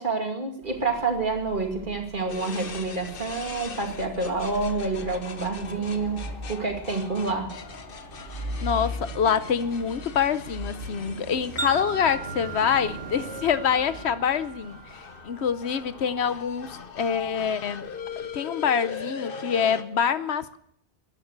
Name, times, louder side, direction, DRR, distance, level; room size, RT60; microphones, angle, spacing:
voice 1, 0.0-7.5, right 3 dB, 50° right, 2.6 m, -28 dB
sound 1, 0.6-18.4, equal, 80° right, 1.8 m, -41 dB
sound 2, 2.3-19.8, left 6 dB, 55° left, 1.1 m, -41 dB
voice 2, 8.6-17.9 18.2-20.6, left 7 dB, 80° left, 1.1 m, -26 dB
Wind chime, 11.6-15.9, right 5 dB, 10° right, 2.1 m, -39 dB
14.0 x 10.5 x 8.1 m
omnidirectional pair, 1.1 m